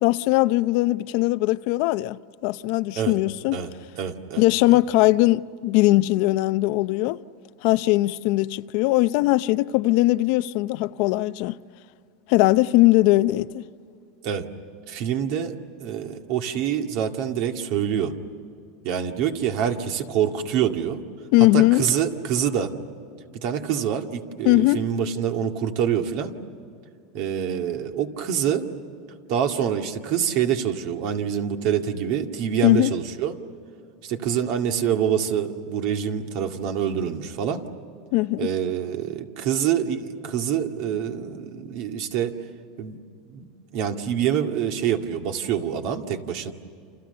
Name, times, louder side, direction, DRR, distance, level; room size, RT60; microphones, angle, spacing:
voice 1, 0.0-3.6 4.4-7.2 7.6-11.6 12.3-13.6 21.3-21.8 24.4-24.8 32.6-32.9 38.1-38.5, left 19 dB, 60° left, 0.6 m, -20 dB
voice 2, 4.0-4.4 4.7-4.8 14.2-14.4 14.9-18.1 18.8-21.0 21.5-22.7 23.4-26.3 27.1-28.7 29.3-33.4 34.0-37.6 38.4-42.3 42.8-43.0 43.3-46.5, right 8 dB, 55° right, 2.1 m, -26 dB
29.5 x 28.0 x 6.9 m
supercardioid pair, 145°, 0 cm